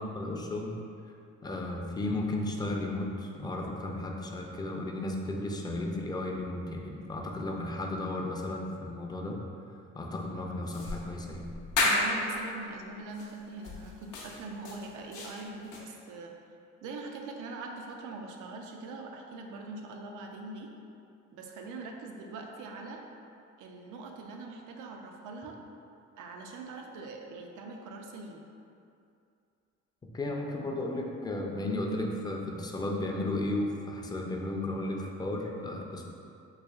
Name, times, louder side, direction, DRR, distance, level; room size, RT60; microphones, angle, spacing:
voice 1, 0.1-0.8 1.4-9.4 9.9-11.5 30.1-36.1, left 2 dB, 15° left, 0 dB, 0.3 m, -34 dB
sound 1, 10.7-12.4 13.1-13.3 13.6-15.8, left 2 dB, 80° left, 0.6 m, -32 dB
voice 2, 11.8-16.4 16.8-20.7 21.3-23.0 23.6-25.6 26.2-28.4, right 3 dB, 85° right, 2 dB, 0.5 m, -42 dB
4.0 x 2.8 x 2.3 m, 2.5 s
cardioid pair, 90°, 30 cm